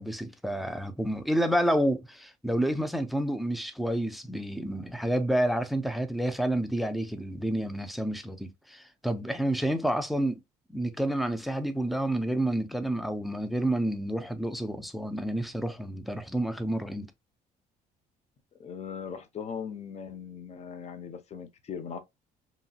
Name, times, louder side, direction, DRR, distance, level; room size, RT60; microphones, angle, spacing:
voice 1, 0.0-10.4 10.7-17.1, right 1 dB, ahead, 0.4 m, -29 dB
voice 2, 18.6-22.0, left 7 dB, 40° left, 0.7 m, -39 dB
2.9 x 2.7 x 2.3 m
cardioid pair, 110°, 17 cm